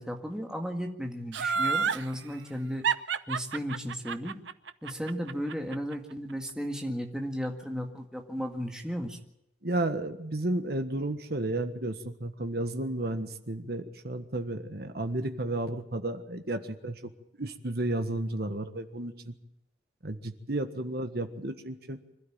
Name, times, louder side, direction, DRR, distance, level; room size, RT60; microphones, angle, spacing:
voice 1, 0.0-2.8 3.3-4.4 4.8-9.2, equal, 5° right, 2 dB, 1.9 m, -35 dB
Laughter, 1.3-2.0 2.8-5.9 6.3-6.4, right 5 dB, 85° right, 0.8 m, -29 dB
voice 2, 9.6-17.0 17.4-19.3 20.0-22.0, right 1 dB, 55° right, 8 dB, 1.5 m, -32 dB
25.5 x 12.5 x 8.9 m, 0.83 s
head